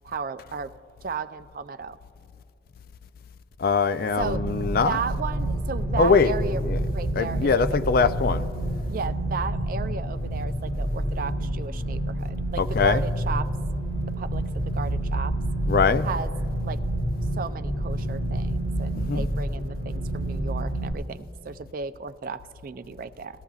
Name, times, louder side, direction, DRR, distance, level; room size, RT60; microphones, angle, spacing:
voice 1, 0.0-0.7 1.0-2.0 4.2-6.6 6.9-7.8 8.9-13.5 14.2-14.4 14.7-15.3 16.0-16.3 16.6-16.8 17.4-23.4, right 5 dB, 45° right, 12 dB, 0.3 m, -34 dB
voice 2, 3.6-5.0 6.0-6.3 6.7-6.8 7.2-8.5 12.6-13.0 15.7-16.1 18.9-19.3, left 5 dB, 50° left, 11 dB, 0.3 m, -22 dB
sound 1, 4.2-20.9, right 1 dB, 70° left, 1.5 m, -28 dB
19.0 x 13.5 x 2.4 m, 2.6 s
head